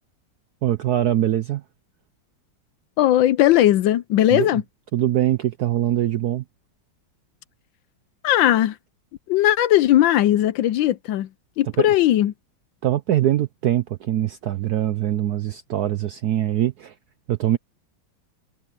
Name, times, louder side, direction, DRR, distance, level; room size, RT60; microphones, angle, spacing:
voice 1, 0.6-1.6 4.3-4.5 4.9-6.4 11.8-11.9 12.8-16.9 17.3-17.6, right 12 dB, 70° right, 0.9 m, -22 dB
voice 2, 3.0-4.6 8.2-8.8 9.3-11.3 11.6-12.3, left 13 dB, 75° left, 1.2 m, -18 dB
omnidirectional pair, 2.3 m